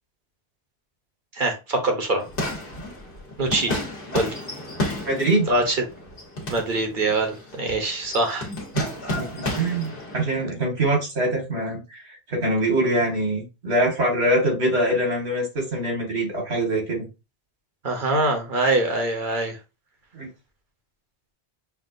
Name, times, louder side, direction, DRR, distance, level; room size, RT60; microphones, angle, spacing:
voice 1, 1.3-2.2 3.4-3.8 4.1-4.3 5.5-5.8 6.5-8.5 17.8-19.6, right 2 dB, 55° right, 1.0 m, -23 dB
sound 1, 2.2-10.4, left 1 dB, 55° left, 1.4 m, -32 dB
voice 2, 5.1-5.5 8.7-8.9 9.2-17.1 20.1-20.3, right 1 dB, 90° right, 2.2 m, -24 dB
5.9 x 2.3 x 2.5 m
omnidirectional pair, 1.1 m